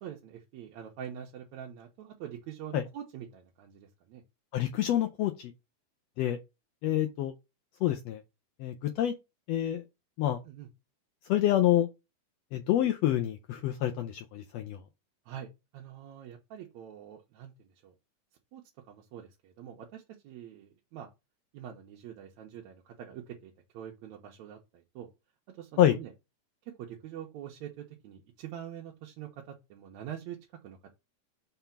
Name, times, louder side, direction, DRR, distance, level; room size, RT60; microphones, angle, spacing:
voice 1, 0.0-4.2 10.4-10.7 15.3-17.9 18.5-18.6 18.9-21.1 21.5-25.1 25.5-26.1 26.8-30.4 30.6-30.9, right 10 dB, 70° right, 2.0 m, -45 dB
voice 2, 4.5-5.5 6.2-6.4 6.8-7.3 7.8-8.2 8.6-9.1 9.5-9.8 10.2-10.4 11.3-11.9 12.5-14.8 25.8-26.0, left 12 dB, 90° left, 1.4 m, -27 dB
5.8 x 3.4 x 5.7 m
omnidirectional pair, 3.6 m